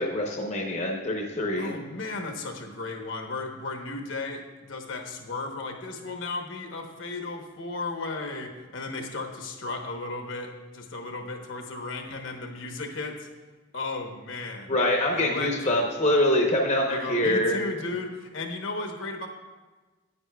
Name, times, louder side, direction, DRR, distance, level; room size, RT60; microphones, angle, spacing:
voice 1, 0.0-1.7 14.7-17.6, left 1 dB, 35° left, 0 dB, 0.7 m, -24 dB
voice 2, 1.6-13.3 13.7-14.8 15.1-15.8 16.9-19.3, left 3 dB, 70° left, 3 dB, 1.0 m, -35 dB
9.6 x 9.0 x 2.3 m, 1.3 s
head